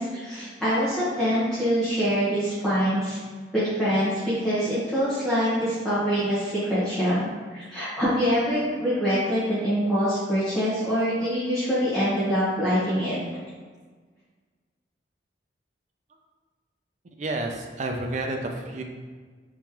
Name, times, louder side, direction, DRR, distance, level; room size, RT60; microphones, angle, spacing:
voice 1, 0.0-3.2 3.5-7.2 7.5-13.2, equal, 5° left, -15 dB, 1.0 m, -24 dB
voice 2, 17.2-18.8, right 2 dB, 40° right, 3 dB, 0.4 m, -30 dB
3.6 x 3.0 x 2.9 m, 1.5 s
head